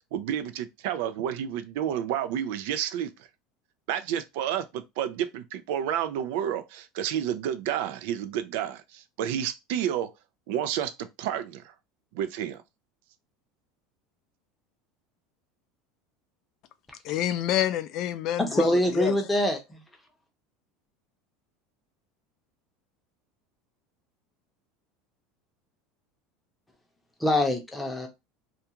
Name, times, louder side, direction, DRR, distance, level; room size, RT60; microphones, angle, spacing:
voice 1, 0.1-3.1 3.9-10.1 10.5-11.7 12.1-12.6, right 10 dB, 75° right, 0.3 m, -30 dB
voice 2, 17.0-19.2, left 12 dB, 50° left, 0.3 m, -28 dB
voice 3, 18.4-19.8 27.2-28.1, left 1 dB, 5° left, 0.7 m, -24 dB
2.4 x 2.3 x 2.8 m
supercardioid pair, 135°, 0 cm